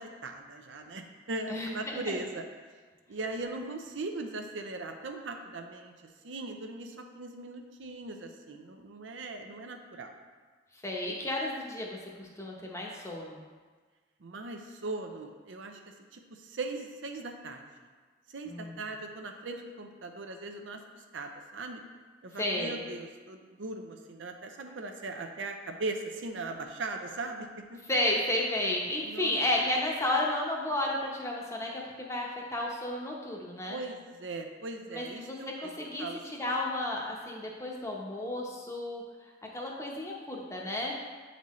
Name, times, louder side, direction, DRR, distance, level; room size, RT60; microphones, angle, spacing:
voice 1, 0.0-2.7 3.1-5.9 6.2-10.1 14.2-17.9 18.3-20.8 21.1-21.8 22.2-27.8 29.0-29.3 33.7-36.2, right 2 dB, 80° right, 4 dB, 0.6 m, -39 dB
voice 2, 1.5-2.0 10.8-13.4 18.5-18.7 22.4-22.8 27.9-33.8 34.9-36.1 36.4-39.0 39.5-41.0, left 1 dB, 15° left, -2 dB, 0.8 m, -32 dB
8.3 x 4.1 x 3.1 m, 1.4 s
head